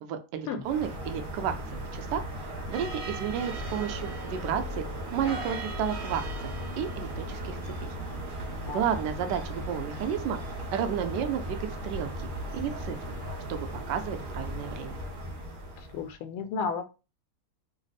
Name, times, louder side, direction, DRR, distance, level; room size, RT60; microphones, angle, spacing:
voice 1, 0.0-4.8 5.1-6.5 6.8-7.9 8.7-10.4 10.7-11.6 11.8-12.3 12.5-13.0 13.5-15.0, right 8 dB, 75° right, 7 dB, 1.0 m, -32 dB
sound 1, 0.6-16.1, right 1 dB, 50° right, 0.6 m, -36 dB
voice 2, 15.9-16.9, left 5 dB, 90° left, 8 dB, 1.5 m, -32 dB
3.4 x 2.0 x 4.0 m, 0.31 s
omnidirectional pair, 2.3 m